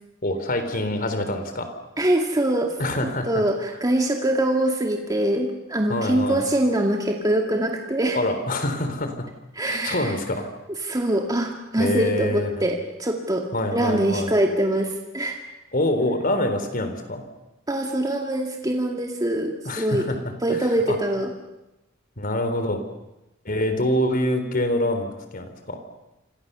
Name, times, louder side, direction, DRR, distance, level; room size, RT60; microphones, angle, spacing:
voice 1, 0.2-1.7 2.8-3.4 5.9-6.4 8.1-9.3 9.6-10.5 11.8-12.7 13.5-14.3 15.7-17.2 19.7-20.2 20.5-21.0 22.2-22.8 23.5-25.8, left 1 dB, 45° left, 8 dB, 4.0 m, -25 dB
voice 2, 2.0-2.7 3.0-8.2 9.5-10.2 10.8-13.5 13.7-15.4 17.7-20.0 20.4-21.3, right 1 dB, 20° right, 2 dB, 2.1 m, -23 dB
29.0 x 26.5 x 6.9 m, 0.96 s
head